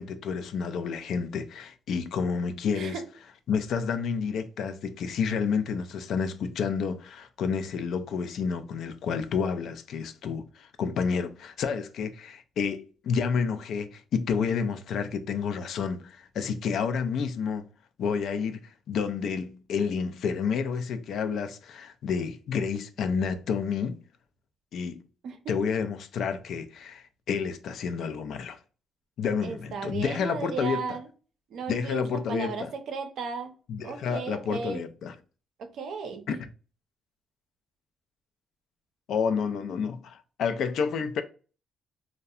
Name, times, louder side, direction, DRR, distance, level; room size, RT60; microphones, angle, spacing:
voice 1, 0.0-3.0 3.5-17.6 18.0-18.6 18.9-24.0 24.7-25.0 25.5-28.6 29.2-30.8 31.7-32.7 33.7-35.1 36.3-36.4 39.1-41.2, left 6 dB, 70° left, 0.3 m, -30 dB
voice 2, 25.2-25.7 29.4-31.1 31.5-33.5 33.8-34.8 35.6-36.4, right 5 dB, 70° right, 0.6 m, -35 dB
2.7 x 2.1 x 2.3 m
cardioid pair, 90°, 0 cm